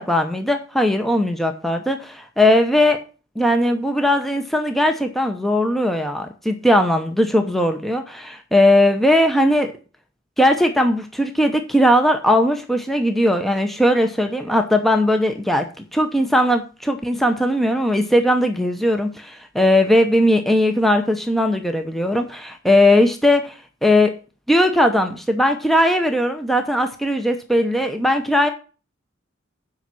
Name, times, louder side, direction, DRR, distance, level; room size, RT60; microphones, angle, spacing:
voice 1, 0.0-3.0 3.4-9.7 10.4-24.1 24.5-28.5, left 1 dB, ahead, 5 dB, 0.8 m, -18 dB
8.9 x 5.6 x 7.5 m, 0.35 s
head